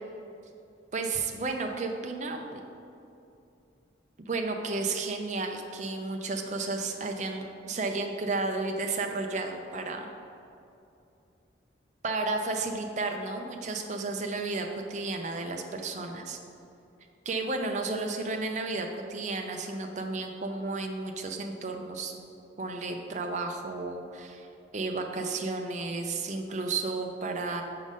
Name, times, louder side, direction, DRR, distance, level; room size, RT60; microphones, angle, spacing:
voice 1, 0.9-2.6 4.3-10.1 12.0-16.4 17.3-22.1 22.6-24.5 24.7-27.6, right 3 dB, 40° right, 4 dB, 0.5 m, -32 dB
6.1 x 3.9 x 5.2 m, 2.7 s
head